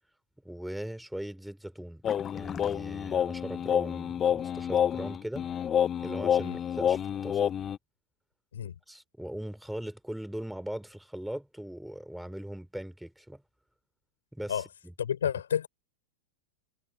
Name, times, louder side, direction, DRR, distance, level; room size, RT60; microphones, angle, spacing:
voice 1, 0.4-2.0 2.3-5.5 6.0-7.4 8.9-13.4 14.3-14.9, right 1 dB, ahead, 4.4 m, -39 dB
sound 1, 2.0-7.8, left 9 dB, 25° left, 1.5 m, -28 dB
voice 2, 15.0-15.7, left 9 dB, 65° left, 4.9 m, -30 dB
figure-of-eight pair, 90°, 0 cm